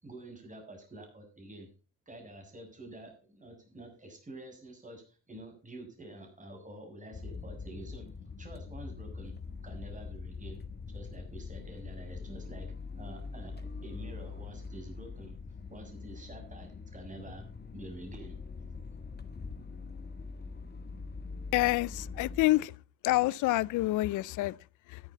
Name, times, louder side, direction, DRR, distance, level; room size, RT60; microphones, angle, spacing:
voice 1, 0.0-1.7 2.1-8.1 8.4-9.3 9.6-10.6 10.9-12.7 13.0-15.4 15.7-17.4 17.7-18.4, right 1 dB, 25° right, 6.6 m, -48 dB
sound 1, 7.1-22.4, left 4 dB, 35° left, 1.6 m, -43 dB
voice 2, 21.5-22.7 23.0-24.5, left 18 dB, 85° left, 0.5 m, -27 dB
13.0 x 11.5 x 4.1 m
cardioid pair, 90°, 30 cm